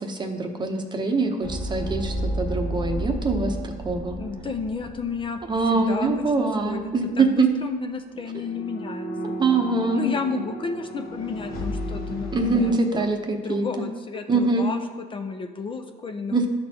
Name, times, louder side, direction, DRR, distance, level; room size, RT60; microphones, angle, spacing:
voice 1, 0.0-4.2 5.5-7.5 9.4-10.4 12.3-13.7 14.3-14.7 16.3-16.5, right 3 dB, 25° right, 4 dB, 0.8 m, -24 dB
sound 1, 1.4-6.3 6.5-6.8 8.2-12.8, right 1 dB, 70° left, 1.4 m, -33 dB
voice 2, 4.2-5.4 5.7-9.3 9.9-13.2 13.4-16.5, left 5 dB, 30° left, 5 dB, 0.5 m, -32 dB
12.0 x 4.3 x 2.8 m, 1.4 s
cardioid pair, 110°, 17 cm